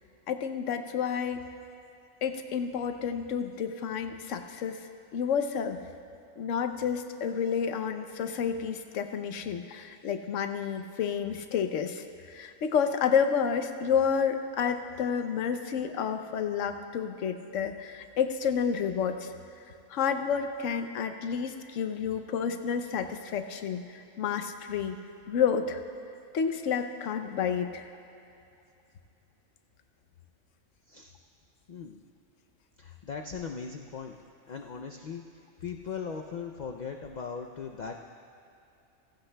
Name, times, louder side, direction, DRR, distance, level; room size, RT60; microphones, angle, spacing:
voice 1, 0.3-1.4 2.2-4.8 5.1-5.8 6.4-19.3 19.9-25.0 25.3-25.8 26.3-27.8, left 7 dB, 75° left, 7 dB, 1.0 m, -30 dB
voice 2, 31.7-32.0 32.8-34.2 34.5-35.2 35.6-38.0, left 6 dB, 60° left, 3 dB, 0.4 m, -39 dB
15.5 x 15.5 x 2.2 m, 2.7 s
omnidirectional pair, 1.3 m